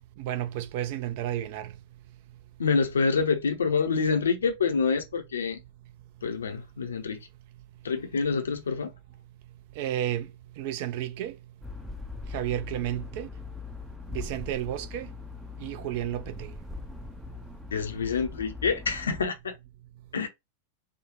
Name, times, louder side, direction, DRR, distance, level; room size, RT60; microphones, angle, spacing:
voice 1, 0.2-1.7 9.8-10.3 10.6-11.4 12.3-13.3 14.1-15.1 15.6-16.5, right 12 dB, 50° right, 0.5 m, -32 dB
voice 2, 2.6-5.6 6.2-7.2 7.8-8.9 17.7-19.5 20.1-20.3, left 5 dB, 70° left, 0.7 m, -27 dB
sound 1, 11.6-19.3, left 4 dB, ahead, 0.5 m, -41 dB
3.6 x 2.2 x 3.0 m
figure-of-eight pair, 90°, 0 cm